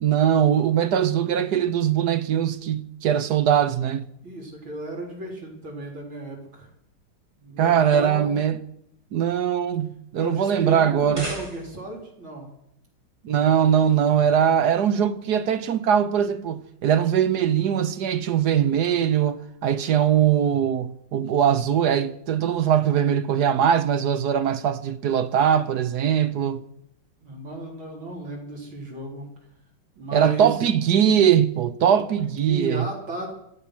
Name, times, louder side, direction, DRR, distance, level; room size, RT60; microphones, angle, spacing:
voice 1, 0.0-4.1 7.6-8.6 9.1-11.2 13.2-26.6 30.1-32.9, right 9 dB, 60° right, 1.3 m, -21 dB
voice 2, 4.2-6.7 7.4-8.3 10.1-12.5 27.2-29.3 30.0-30.6 32.4-33.3, right 2 dB, 80° right, 4.7 m, -34 dB
sound 1, 10.9-12.0, equal, 15° right, 4.4 m, -36 dB
26.5 x 8.9 x 6.1 m
omnidirectional pair, 2.2 m